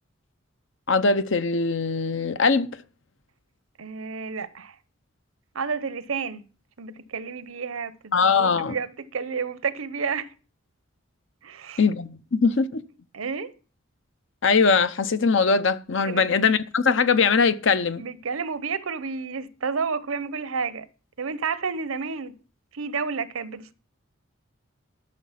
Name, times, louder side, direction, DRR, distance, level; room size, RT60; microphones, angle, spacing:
voice 1, 0.9-2.7 8.1-8.8 11.8-12.8 14.4-18.0, left 4 dB, 60° left, 0.7 m, -21 dB
voice 2, 3.8-4.8 5.5-6.4 6.8-10.3 11.4-11.8 13.1-13.5 16.0-16.3 18.0-20.9 21.2-22.3 22.7-23.7, right 5 dB, 80° right, 0.7 m, -30 dB
12.5 x 6.4 x 5.7 m
head